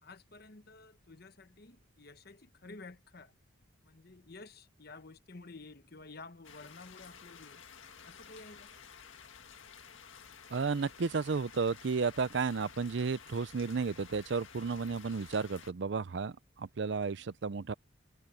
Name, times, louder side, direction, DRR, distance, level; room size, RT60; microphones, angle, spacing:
voice 1, 0.0-3.3 3.8-7.6 8.0-8.7, left 3 dB, 50° left, 1.1 m, -52 dB
sound 1, 6.4-15.7, left 7 dB, 75° left, 1.8 m, -53 dB
voice 2, 10.5-17.7, right 4 dB, 60° right, 0.5 m, -33 dB
head